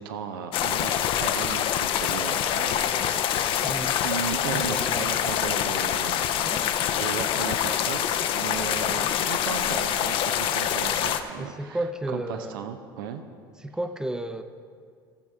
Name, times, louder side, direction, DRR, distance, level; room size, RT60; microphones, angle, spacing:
voice 1, 0.0-3.3 4.0-6.6 6.9-11.8 12.1-13.2, right 7 dB, 70° right, 8 dB, 0.7 m, -36 dB
sound 1, 0.5-11.2, left 10 dB, 45° left, 0.6 m, -25 dB
voice 2, 3.6-4.0 4.5-5.1 6.4-6.7 11.4-12.6 13.6-14.4, right 1 dB, 5° right, 10 dB, 0.6 m, -32 dB
15.5 x 7.5 x 3.5 m, 2.1 s
hypercardioid pair, 75°, 12 cm